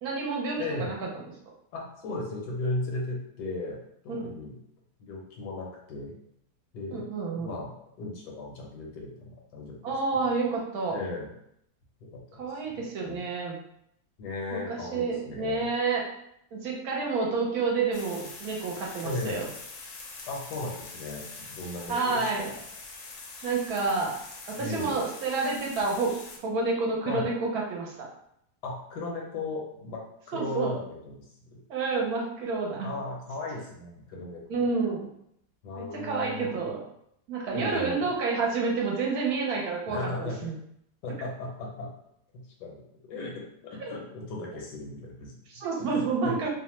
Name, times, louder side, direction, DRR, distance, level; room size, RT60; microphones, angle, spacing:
voice 1, 0.0-1.1 4.1-4.3 6.9-7.5 9.8-11.0 12.4-13.6 14.5-16.0 16.5-19.5 21.9-22.5 23.4-24.2 24.5-26.1 26.4-28.1 30.3-30.8 31.7-32.9 34.5-35.1 35.8-36.8 37.3-40.5 43.8-43.9 45.5-46.5, right 4 dB, 70° right, -1 dB, 1.1 m, -29 dB
voice 2, 0.6-0.9 1.7-4.5 5.0-6.1 6.7-7.0 7.4-7.7 8.0-9.8 10.9-11.3 12.1-12.4 13.0-13.2 14.2-15.6 19.0-19.4 20.3-22.6 24.6-25.0 27.1-27.3 28.6-30.0 30.3-31.2 31.5-31.6 32.8-34.7 35.6-36.7 37.5-38.0 39.9-40.4 41.0-41.9 42.3-45.3 45.8-46.3, left 2 dB, 85° left, -1 dB, 1.3 m, -36 dB
sound 1, 17.9-26.4, left 3 dB, 65° left, 0.9 m, -44 dB
2.9 x 2.1 x 3.0 m, 0.74 s
omnidirectional pair, 1.7 m